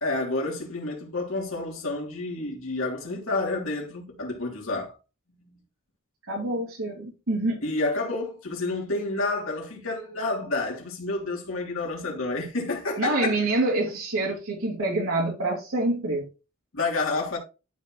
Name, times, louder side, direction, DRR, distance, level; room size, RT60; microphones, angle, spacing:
voice 1, 0.0-5.0 5.4-5.6 7.6-13.4 16.7-17.4, left 2 dB, 75° left, 2.9 m, -29 dB
voice 2, 6.3-7.6 13.0-16.3, right 2 dB, 85° right, 2.9 m, -26 dB
12.5 x 4.3 x 3.0 m
head